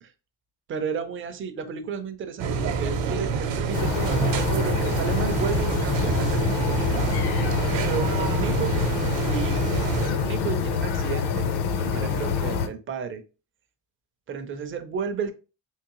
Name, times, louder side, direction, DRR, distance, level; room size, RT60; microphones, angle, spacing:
voice 1, 0.7-7.0 8.0-8.8 9.3-9.7 10.1-11.5 11.8-13.2 14.3-15.3, right 6 dB, 30° right, 0.4 m, -33 dB
sound 1, 2.4-10.1, right 5 dB, 65° right, 0.8 m, -27 dB
sound 2, 3.7-12.7, left 6 dB, 55° left, 0.6 m, -26 dB
3.6 x 3.0 x 2.9 m
cardioid pair, 145°, 47 cm